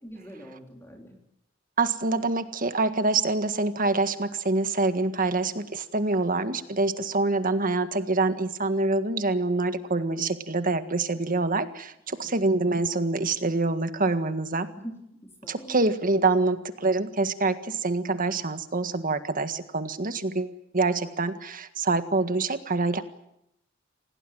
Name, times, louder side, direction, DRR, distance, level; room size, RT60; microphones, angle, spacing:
voice 1, 0.0-1.2 12.2-12.5 14.7-14.9 15.2-15.9, equal, 15° left, 1 dB, 3.6 m, -43 dB
voice 2, 1.8-14.7 15.5-23.0, right 3 dB, 45° right, 10 dB, 1.8 m, -26 dB
27.0 x 18.5 x 9.2 m, 0.82 s
head